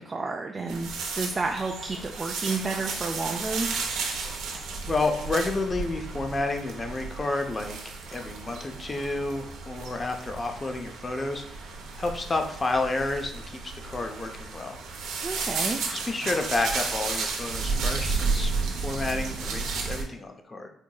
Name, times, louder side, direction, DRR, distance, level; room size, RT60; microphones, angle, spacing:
voice 1, 0.0-3.7 15.2-15.8, right 3 dB, 30° right, 1 dB, 0.3 m, -31 dB
sound 1, 0.7-20.0, right 4 dB, 85° right, 0.6 m, -33 dB
voice 2, 4.9-11.7 12.0-14.8 15.9-20.7, left 2 dB, 30° left, 4 dB, 0.5 m, -30 dB
4.5 x 2.6 x 2.3 m, 0.70 s
cardioid pair, 90°, 0 cm